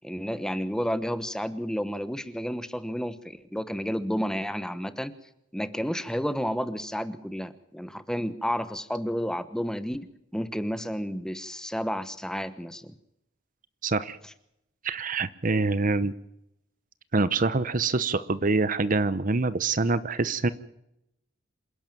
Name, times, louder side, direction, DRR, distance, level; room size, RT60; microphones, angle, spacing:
voice 1, 0.0-5.1 5.5-10.1 10.3-13.0, equal, 5° left, 12 dB, 1.1 m, -31 dB
voice 2, 13.8-14.2 14.8-16.1 17.1-20.5, right 3 dB, 40° right, 15 dB, 0.8 m, -25 dB
27.5 x 11.0 x 9.0 m, 0.80 s
head